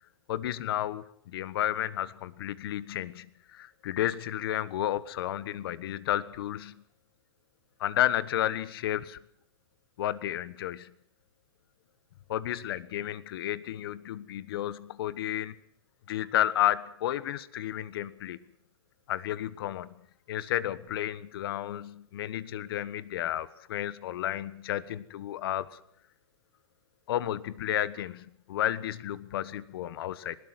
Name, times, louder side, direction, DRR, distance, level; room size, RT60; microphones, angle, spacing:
voice 1, 0.3-6.8 7.8-9.2 10.0-10.9 12.3-15.6 16.1-18.4 19.1-19.9 20.3-25.7 27.1-30.4, left 12 dB, 65° left, 16 dB, 1.3 m, -32 dB
20.0 x 18.0 x 8.0 m, 0.67 s
hypercardioid pair, 135°, 13 cm